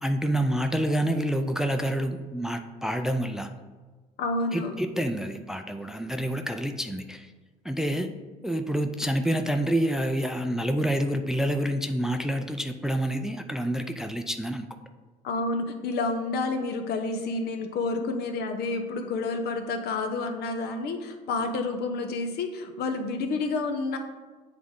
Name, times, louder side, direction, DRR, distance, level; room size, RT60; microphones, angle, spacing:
voice 1, 0.0-3.5 4.5-7.3 7.6-8.1 8.4-14.7, right 1 dB, 5° right, 7 dB, 0.4 m, -28 dB
voice 2, 4.2-4.7 15.2-24.0, left 3 dB, 70° left, 6 dB, 0.8 m, -29 dB
8.2 x 3.7 x 3.7 m, 1.3 s
cardioid pair, 110°, 17 cm